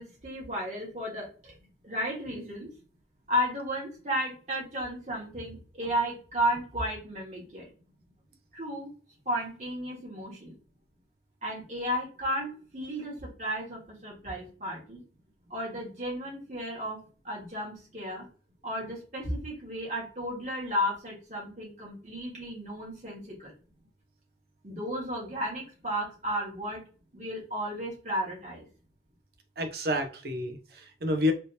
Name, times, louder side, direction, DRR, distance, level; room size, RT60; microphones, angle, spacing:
voice 1, 0.0-1.5 1.8-2.7 3.3-7.7 8.5-8.9 9.2-10.6 11.4-15.0 15.5-17.0 17.2-18.2 18.6-23.5 24.6-26.8 27.1-28.6, equal, 40° right, -4 dB, 1.6 m, -33 dB
voice 2, 29.6-31.3, left 1 dB, 60° right, 5 dB, 0.6 m, -29 dB
3.4 x 2.8 x 2.7 m, 0.38 s
head